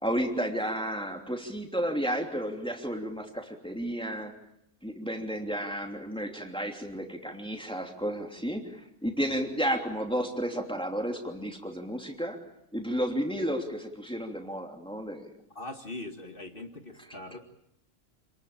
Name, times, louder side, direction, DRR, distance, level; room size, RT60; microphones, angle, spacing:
voice 1, 0.0-4.3 4.8-12.4 12.7-15.3, equal, 5° left, 3 dB, 3.0 m, -32 dB
voice 2, 15.6-17.4, left 2 dB, 45° left, 6 dB, 1.9 m, -41 dB
28.0 x 20.5 x 8.9 m, 0.78 s
omnidirectional pair, 1.3 m